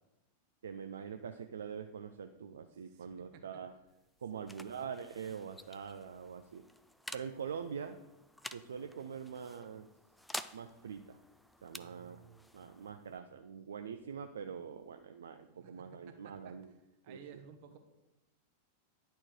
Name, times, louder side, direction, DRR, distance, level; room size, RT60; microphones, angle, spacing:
voice 1, 0.6-3.7 4.2-6.6 7.1-8.0 8.5-9.9 10.5-11.2 11.6-12.2 12.5-16.7 17.1-17.2, right 7 dB, 65° right, 8 dB, 0.4 m, -44 dB
voice 2, 2.7-3.6 4.3-4.8 11.7-12.7 15.4-16.5 17.0-17.8, right 7 dB, 45° right, 6 dB, 1.0 m, -57 dB
sound 1, 3.7-15.0, left 1 dB, 5° left, 0.4 m, -51 dB
10.0 x 4.4 x 4.6 m, 0.97 s
figure-of-eight pair, 90°, 0 cm